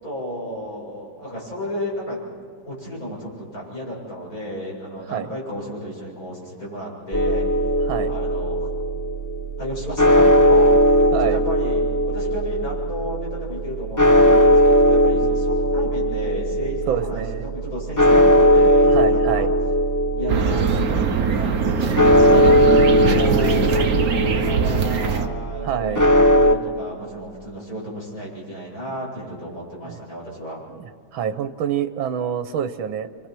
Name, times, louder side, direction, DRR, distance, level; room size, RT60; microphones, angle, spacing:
voice 1, 0.0-2.2 2.7-7.5 8.0-8.7 9.6-19.5 20.1-21.0 21.3-30.6, equal, 45° left, -5 dB, 7.9 m, -33 dB
sound 1, 7.1-26.5, equal, 15° left, 0.7 m, -18 dB
voice 2, 16.9-17.4 18.9-19.5 25.6-26.1 29.8-30.0 30.7-30.8 31.1-33.3, right 9 dB, 85° right, 9 dB, 1.7 m, -26 dB
sound 2, 20.3-25.3, right 6 dB, 50° right, 1.4 m, -22 dB
28.0 x 25.0 x 6.1 m, 2.1 s
omnidirectional pair, 2.2 m